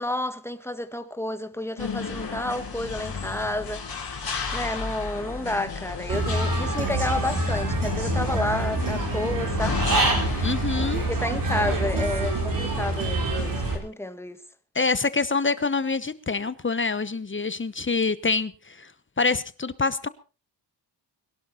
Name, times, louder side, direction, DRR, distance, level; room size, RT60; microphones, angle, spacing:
voice 1, 0.0-4.1 4.5-9.9 10.3-10.6 11.1-14.4, left 1 dB, 5° left, 1.7 m, -31 dB
sound 1, 1.8-13.8, left 5 dB, 55° left, 4.6 m, -33 dB
Human voice / Bird, 6.1-13.7, right 2 dB, 50° right, 5.2 m, -26 dB
voice 2, 10.4-11.0 14.7-18.9 19.2-20.1, left 4 dB, 25° left, 1.0 m, -26 dB
22.0 x 12.0 x 4.3 m
wide cardioid pair, 95°, 43 cm